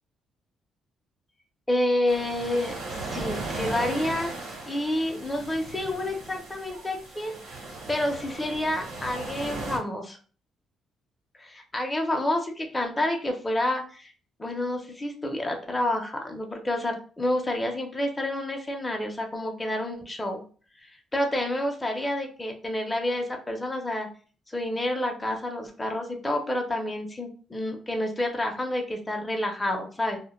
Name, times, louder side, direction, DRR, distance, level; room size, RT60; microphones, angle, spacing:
voice 1, 1.7-4.3 4.7-7.4 7.9-10.2 11.4-14.1 14.4-20.4 20.8-24.1 24.5-30.2, left 1 dB, 15° left, 2 dB, 0.5 m, -29 dB
sound 1, 2.1-9.8, right 2 dB, 90° right, 0.9 m, -37 dB
2.1 x 2.1 x 3.0 m, 0.41 s
cardioid pair, 90°, 0 cm